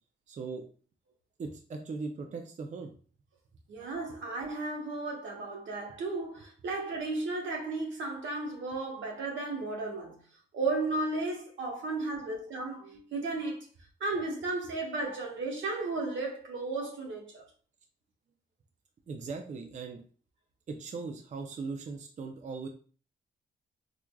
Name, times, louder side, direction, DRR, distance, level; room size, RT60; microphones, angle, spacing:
voice 1, 0.3-0.6 1.4-2.9 19.1-20.0 20.7-22.7, right 4 dB, 40° right, 0.4 m, -39 dB
voice 2, 3.7-10.2 10.5-13.7 14.0-17.4, right 3 dB, 85° right, 1.0 m, -34 dB
4.5 x 2.4 x 2.2 m
cardioid pair, 115°, 19 cm